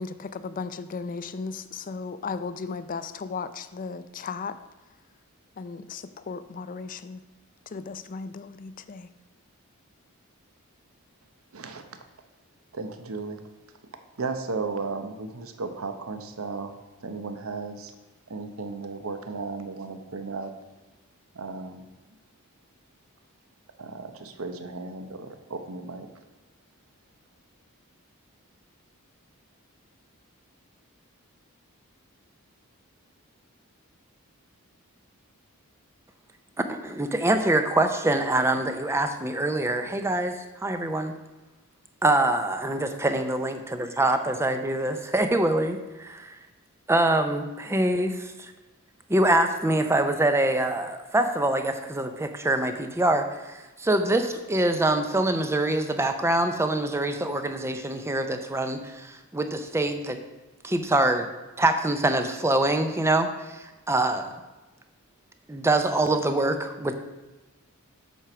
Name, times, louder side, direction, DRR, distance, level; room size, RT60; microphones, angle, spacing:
voice 1, 0.0-4.6 5.6-7.2 7.7-9.1, left 4 dB, 40° left, 13 dB, 0.4 m, -35 dB
voice 2, 11.5-12.0 12.7-13.4 14.2-16.7 17.0-17.9 18.3-20.5 21.3-21.9 23.8-26.1, right 4 dB, 70° right, 7 dB, 0.8 m, -35 dB
voice 3, 36.6-41.1 42.0-46.4 46.9-48.5 49.1-60.2 60.6-61.3 61.6-64.3 65.5-67.0, right 1 dB, 10° right, 7 dB, 0.6 m, -25 dB
8.2 x 4.4 x 6.0 m, 1.1 s
head